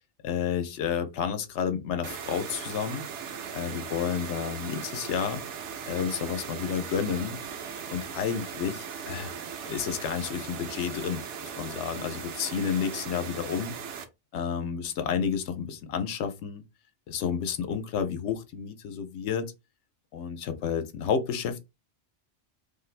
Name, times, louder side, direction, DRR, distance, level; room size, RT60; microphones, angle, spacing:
voice 1, 0.2-3.1 3.5-5.4 5.9-7.4 7.9-9.3 9.7-13.7 14.3-16.6 17.1-19.5 20.1-21.6, left 7 dB, 80° left, 0.9 m, -31 dB
sound 1, 2.0-14.1, right 7 dB, 85° right, 0.9 m, -38 dB
2.5 x 2.4 x 3.1 m
omnidirectional pair, 1.2 m